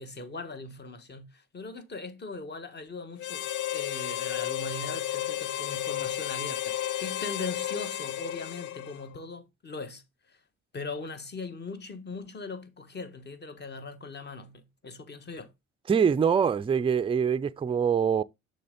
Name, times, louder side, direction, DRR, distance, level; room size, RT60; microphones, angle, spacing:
voice 1, 0.0-3.5 3.7-10.4 10.7-15.5, left 3 dB, 35° left, 1.2 m, -40 dB
Harmonica, 3.2-9.2, left 12 dB, 80° left, 0.5 m, -33 dB
voice 2, 15.9-18.2, right 7 dB, 20° right, 0.4 m, -24 dB
6.8 x 3.3 x 5.1 m
cardioid pair, 90°, 30 cm